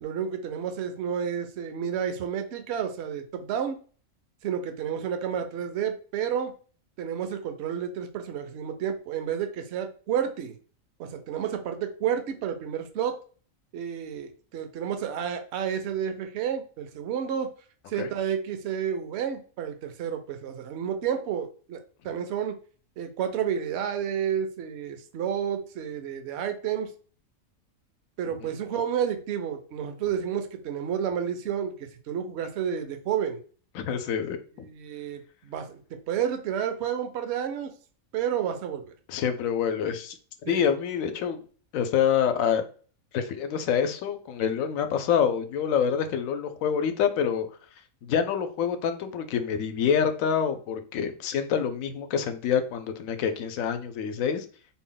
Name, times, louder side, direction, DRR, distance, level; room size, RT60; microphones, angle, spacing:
voice 1, 0.0-3.8 4.4-6.5 7.0-10.6 11.0-13.2 13.7-17.5 17.9-21.8 22.0-22.6 23.0-26.9 28.2-31.7 32.1-33.4 34.6-35.8 36.1-37.7 38.1-38.9 40.4-40.7, right 8 dB, 65° right, 6 dB, 0.8 m, -30 dB
voice 2, 33.7-34.7 39.1-40.2 40.5-41.4 41.7-42.6 43.1-47.5 48.0-54.5, left 7 dB, 80° left, 8 dB, 1.0 m, -26 dB
4.0 x 2.1 x 3.8 m, 0.41 s
omnidirectional pair, 1.4 m